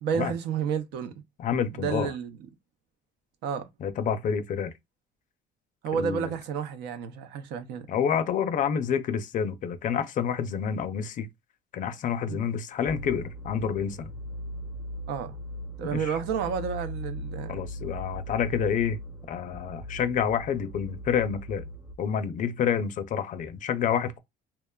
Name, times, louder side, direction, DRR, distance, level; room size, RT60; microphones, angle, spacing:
voice 1, 0.0-1.1 1.7-2.4 3.4-3.7 5.8-7.9 12.3-12.4 15.1-15.4 15.8-17.6, right 7 dB, 85° right, 0.5 m, -30 dB
voice 2, 1.4-2.1 3.8-4.7 5.9-6.3 7.9-11.3 11.7-14.1 15.9-16.1 17.5-19.0 19.3-21.7 22.0-24.2, left 7 dB, 50° left, 0.4 m, -28 dB
sound 1, 12.9-21.9, equal, 10° right, 0.5 m, -39 dB
2.8 x 2.1 x 2.2 m
cardioid pair, 110°, 17 cm